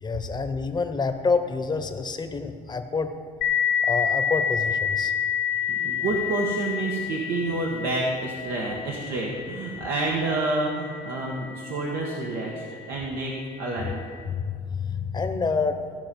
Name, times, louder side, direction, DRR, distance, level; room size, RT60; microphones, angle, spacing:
voice 1, 0.0-3.2 3.8-5.1 14.2-15.8, left 4 dB, 25° left, 8 dB, 0.9 m, -27 dB
sound 1, 3.4-12.6, left 7 dB, 75° left, 0.7 m, -29 dB
voice 2, 5.5-14.1, right 2 dB, 90° right, -3 dB, 1.4 m, -29 dB
15.5 x 5.6 x 5.3 m, 2.2 s
cardioid pair, 110°, 17 cm